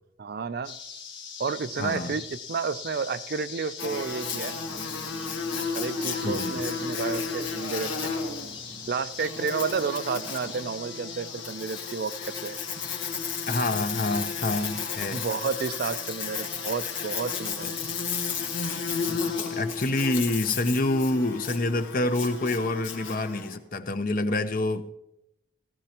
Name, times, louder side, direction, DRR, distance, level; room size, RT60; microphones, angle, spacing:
voice 1, 0.2-0.8 1.4-4.6 5.7-8.1 8.9-12.6 15.1-17.8, right 5 dB, 50° right, 0.4 m, -31 dB
sound 1, 0.6-19.6, left 6 dB, 65° left, 1.6 m, -42 dB
voice 2, 1.8-2.2 6.2-6.6 13.5-15.2 19.1-24.8, left 2 dB, 45° left, 0.6 m, -27 dB
Buzz, 3.8-23.6, left 5 dB, 85° left, 1.9 m, -33 dB
16.5 x 15.0 x 2.9 m
head